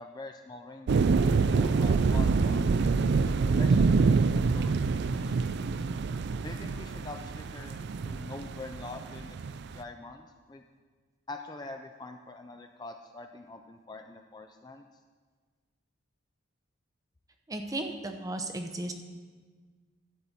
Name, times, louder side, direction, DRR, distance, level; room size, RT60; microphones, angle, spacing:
voice 1, 0.0-2.7 3.3-5.5 6.4-9.4 9.7-10.6 11.3-14.8, left 3 dB, 20° left, 5 dB, 0.4 m, -45 dB
sound 1, 0.9-9.8, right 4 dB, 55° right, 0.3 m, -26 dB
voice 2, 17.5-18.9, right 2 dB, 15° right, 5 dB, 0.7 m, -35 dB
12.5 x 4.2 x 7.9 m, 1.5 s
head